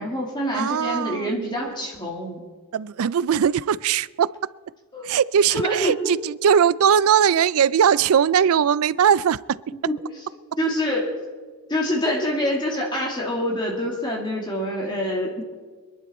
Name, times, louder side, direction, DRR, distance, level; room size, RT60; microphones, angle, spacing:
voice 1, 0.0-2.4 4.9-5.0 5.5-6.1 9.9-10.0 10.6-11.1 11.7-15.4, equal, 20° left, -1 dB, 2.5 m, -26 dB
voice 2, 0.5-1.6 2.7-4.3 5.0-9.6, right 8 dB, 75° right, 20 dB, 0.4 m, -20 dB
26.0 x 11.0 x 4.3 m, 1.5 s
head